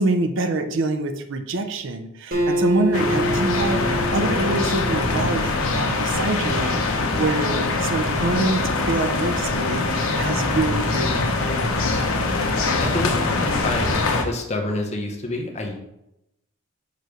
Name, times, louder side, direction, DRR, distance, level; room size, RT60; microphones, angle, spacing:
voice 1, 0.0-11.3, right 2 dB, 60° right, 7 dB, 0.6 m, -26 dB
Acoustic guitar, 2.3-5.7, equal, 45° right, 1.8 m, -26 dB
sound 1, 2.9-14.2, left 3 dB, 80° left, 1.0 m, -23 dB
voice 2, 12.8-13.1 13.4-15.8, left 2 dB, 30° left, 2 dB, 0.9 m, -27 dB
6.7 x 3.2 x 5.2 m, 0.85 s
head